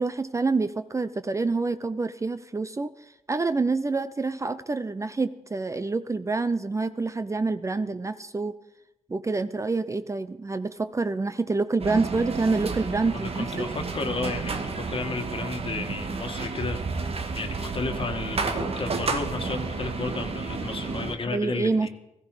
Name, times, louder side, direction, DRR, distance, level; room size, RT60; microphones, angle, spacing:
voice 1, 0.0-2.9 3.3-8.6 9.1-13.7 21.3-21.9, right 3 dB, 25° right, 12 dB, 0.5 m, -27 dB
sound 1, 11.8-21.2, right 4 dB, 55° right, 1.5 m, -31 dB
voice 2, 13.0-16.8 17.3-21.9, left 4 dB, 45° left, 6 dB, 1.6 m, -33 dB
16.0 x 14.5 x 4.8 m, 0.88 s
cardioid pair, 90°, 13 cm